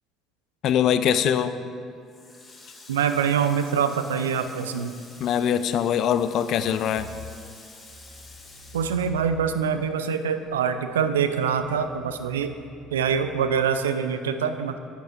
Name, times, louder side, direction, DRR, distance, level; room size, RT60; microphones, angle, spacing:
voice 1, 0.6-1.5 5.2-7.1, left 9 dB, 55° left, 12 dB, 0.3 m, -22 dB
Water tap faucet, 2.1-9.9 10.2-11.5, left 2 dB, 30° left, 2.0 m, -49 dB
voice 2, 2.9-4.9 8.7-12.5 12.9-14.8, right 7 dB, 80° right, 9 dB, 0.3 m, -24 dB
sound 1, 6.9-9.9 10.5-13.7, left 2 dB, 55° right, 1.0 m, -48 dB
10.5 x 8.1 x 2.5 m, 2.3 s
figure-of-eight pair, 55°, 0 cm